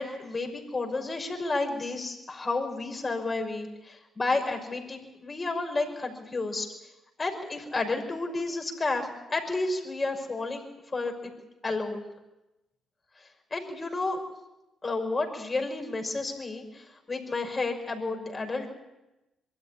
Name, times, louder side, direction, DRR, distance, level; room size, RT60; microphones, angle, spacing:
voice 1, 0.0-6.7 7.2-10.6 10.9-11.3 11.6-12.1 13.5-14.2 14.8-18.7, left 3 dB, 30° left, 3 dB, 6.0 m, -31 dB
23.0 x 14.0 x 9.9 m, 0.97 s
hypercardioid pair, 50°, 0 cm